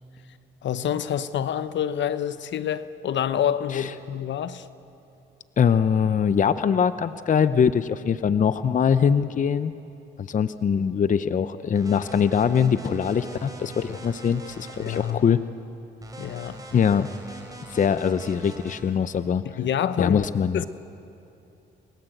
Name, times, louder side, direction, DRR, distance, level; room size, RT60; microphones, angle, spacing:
voice 1, 0.6-4.7 14.8-15.2 16.2-16.6 19.6-20.2 20.5-20.7, left 9 dB, 65° left, 1.0 m, -27 dB
voice 2, 5.6-9.7 10.2-15.4 16.7-17.4 17.7-19.4 20.0-20.6, left 7 dB, 40° left, 0.7 m, -22 dB
sound 1, 11.7-15.1 16.0-18.8, right 2 dB, 20° right, 4.6 m, -41 dB
28.5 x 21.5 x 8.0 m
cardioid pair, 90°, 20 cm